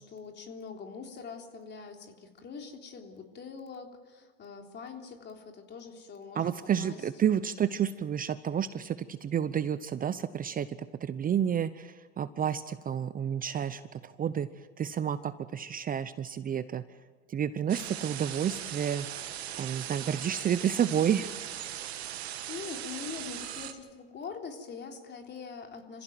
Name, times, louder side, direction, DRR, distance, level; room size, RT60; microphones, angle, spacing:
voice 1, 0.0-6.5 6.8-7.4 22.5-26.0, left 5 dB, 35° left, 3 dB, 3.6 m, -43 dB
voice 2, 6.3-10.7 11.0-14.5 14.8-16.8 17.3-19.1 19.6-21.3, right 9 dB, 30° right, 13 dB, 0.8 m, -30 dB
sound 1, 17.7-23.7, right 11 dB, 90° right, 1.7 m, -39 dB
26.0 x 15.5 x 9.2 m, 1.4 s
hypercardioid pair, 100°, 31 cm